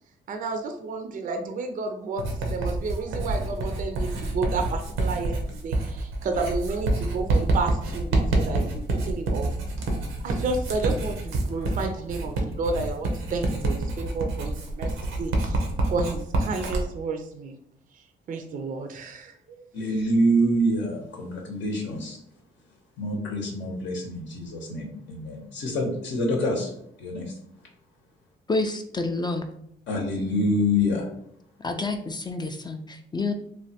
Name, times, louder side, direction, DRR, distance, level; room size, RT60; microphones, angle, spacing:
voice 1, 0.3-2.2 2.5-9.5 10.2-15.6 15.9-17.6 17.9-19.7, right 3 dB, 45° right, 5 dB, 0.4 m, -31 dB
Writing, 2.2-16.8, right 2 dB, 90° right, 0.7 m, -27 dB
voice 2, 19.7-22.2 23.0-26.7 27.0-27.2 29.9-31.0, equal, 70° left, 0 dB, 0.8 m, -26 dB
voice 3, 28.5-29.4 31.6-33.3, left 3 dB, 20° left, 6 dB, 0.3 m, -28 dB
3.1 x 2.1 x 2.7 m, 0.72 s
cardioid pair, 90°, 20 cm